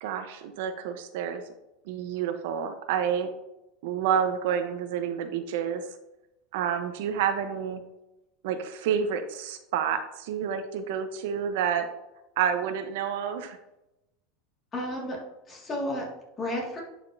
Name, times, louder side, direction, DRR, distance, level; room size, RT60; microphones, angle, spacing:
voice 1, 0.0-1.4 1.9-3.3 3.8-5.8 6.5-7.8 8.4-11.9 12.4-13.6, right 8 dB, 70° right, 8 dB, 0.8 m, -29 dB
voice 2, 14.7-16.8, left 1 dB, 25° left, -1 dB, 1.9 m, -33 dB
10.5 x 5.1 x 2.6 m, 0.93 s
supercardioid pair, 140°, 0 cm